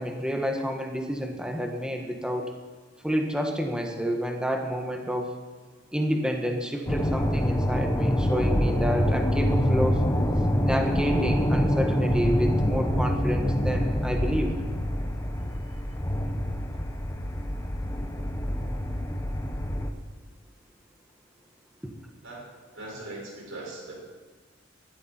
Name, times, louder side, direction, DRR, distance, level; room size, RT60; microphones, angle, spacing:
voice 1, 0.0-2.5 3.0-5.3 5.9-10.0 10.6-14.5, equal, 5° right, 3 dB, 1.5 m, -29 dB
sound 1, 6.9-19.9, equal, 15° left, 1.1 m, -26 dB
voice 2, 22.7-24.0, right 2 dB, 90° right, -2 dB, 5.5 m, -39 dB
18.5 x 13.0 x 4.5 m, 1.4 s
head